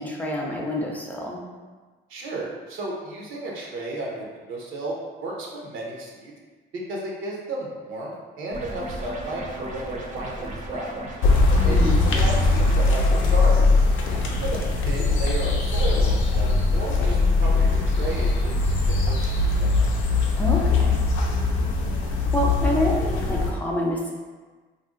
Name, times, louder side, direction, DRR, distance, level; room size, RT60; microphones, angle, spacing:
voice 1, 0.0-1.4 11.5-12.1 20.4-21.0 22.0-24.1, equal, 10° left, -3 dB, 0.5 m, -27 dB
voice 2, 2.1-6.3 6.7-8.1 8.4-11.0 11.6-11.8 12.1-13.0 13.3-13.6 14.1-14.6 14.8-19.8, right 2 dB, 85° right, -3 dB, 0.7 m, -33 dB
sound 1, 8.5-12.9, right 1 dB, 40° right, 0.5 m, -35 dB
sound 2, 11.2-23.5, left 3 dB, 90° left, 0.5 m, -21 dB
2.6 x 2.1 x 3.6 m, 1.4 s
cardioid pair, 90°, 20 cm